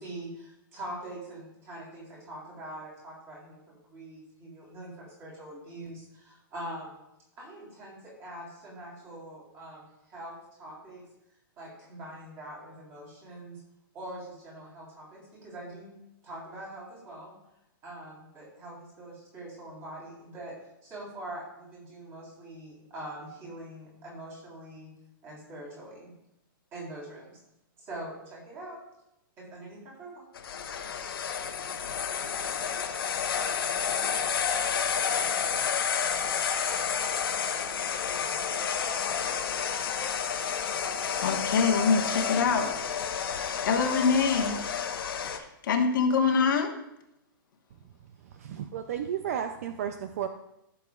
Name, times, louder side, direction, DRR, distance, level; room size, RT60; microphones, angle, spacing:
voice 1, 0.0-7.0 7.4-11.0 11.6-13.6 13.9-15.9 16.2-17.3 17.8-24.9 25.2-26.1 26.7-27.4 27.8-28.8 29.4-30.2, right 1 dB, 20° right, -4 dB, 3.6 m, -43 dB
sound 1, 30.3-45.4, left 7 dB, 85° left, 1.0 m, -30 dB
voice 2, 41.2-42.7 43.6-44.6 45.4-46.7, left 5 dB, 60° left, 3 dB, 1.2 m, -24 dB
voice 3, 48.2-50.3, right 9 dB, 40° right, 8 dB, 0.4 m, -33 dB
14.5 x 6.9 x 2.4 m, 0.84 s
hypercardioid pair, 175°, 12 cm